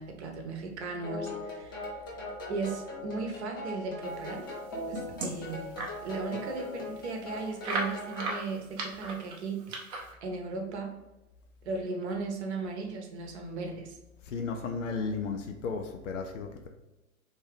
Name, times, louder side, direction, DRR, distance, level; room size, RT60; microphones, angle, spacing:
voice 1, 0.0-2.2 2.5-4.5 4.9-10.9 11.6-14.0, right 4 dB, 50° right, 3 dB, 0.9 m, -37 dB
sound 1, 1.0-8.4, left 2 dB, 15° left, 0.3 m, -40 dB
sound 2, 4.4-6.0 6.5-6.6 6.8-6.9 7.6-10.1, right 2 dB, 25° right, 0.6 m, -36 dB
voice 2, 14.3-16.7, left 4 dB, 60° left, 4 dB, 0.6 m, -34 dB
3.5 x 2.8 x 3.3 m, 1.0 s
figure-of-eight pair, 110°, 43 cm